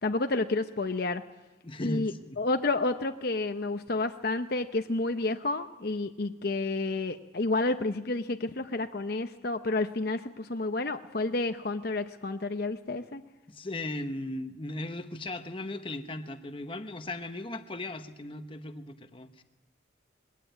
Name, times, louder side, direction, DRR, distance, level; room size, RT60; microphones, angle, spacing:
voice 1, 0.0-1.2 1.8-13.2, left 2 dB, 50° left, 7 dB, 0.8 m, -30 dB
voice 2, 1.6-2.4 13.5-19.4, left 1 dB, 25° left, 8 dB, 1.1 m, -37 dB
21.5 x 16.0 x 9.3 m, 1.1 s
head